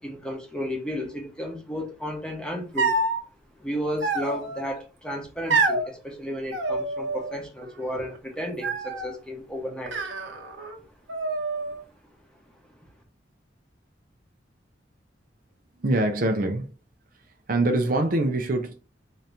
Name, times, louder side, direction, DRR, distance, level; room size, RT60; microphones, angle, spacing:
voice 1, 0.0-2.9 3.6-10.0, equal, 5° left, 0.9 m, -33 dB
sound 1, 2.8-3.2 4.0-4.7 5.5-5.9 6.5-7.3 7.6-8.2 8.6-9.2 9.9-10.8 11.1-11.8, right 3 dB, 80° right, 0.9 m, -27 dB
voice 2, 15.8-16.7 17.5-18.7, right 2 dB, 45° right, 0.5 m, -24 dB
3.8 x 2.8 x 3.4 m
head